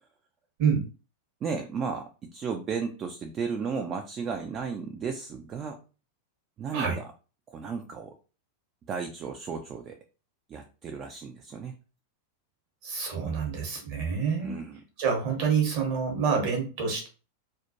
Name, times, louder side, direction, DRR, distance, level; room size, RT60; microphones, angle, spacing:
voice 1, 1.4-5.8 6.6-7.1 7.5-8.2 8.8-10.0 10.5-11.8 14.4-14.8, right 5 dB, 30° right, 4 dB, 0.3 m, -34 dB
voice 2, 12.8-14.6 15.0-17.1, right 6 dB, 45° right, 1 dB, 0.9 m, -27 dB
2.2 x 2.1 x 2.7 m, 0.34 s
figure-of-eight pair, 90°, 0 cm